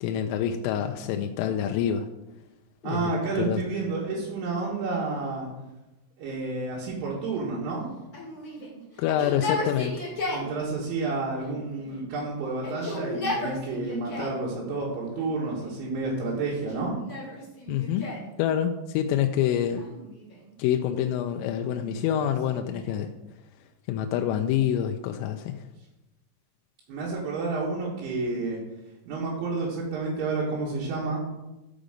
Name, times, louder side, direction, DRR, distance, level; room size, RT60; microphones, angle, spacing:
voice 1, 0.0-2.1 2.8-3.6 9.0-9.9 17.7-18.1 18.4-19.9 20.6-23.1 23.9-25.6, left 10 dB, 90° left, 5 dB, 3.3 m, -27 dB
voice 2, 2.8-5.5 6.2-7.9 10.3-16.9 26.9-28.6 29.1-31.2, right 3 dB, 75° right, -6 dB, 4.2 m, -30 dB
Yell, 8.1-10.5 11.4-12.1 12.5-14.4 15.1-15.8 16.5-18.3 19.7-20.5 21.4-23.1, left 2 dB, 35° left, 1.5 m, -36 dB
13.0 x 5.0 x 5.1 m, 0.99 s
omnidirectional pair, 5.9 m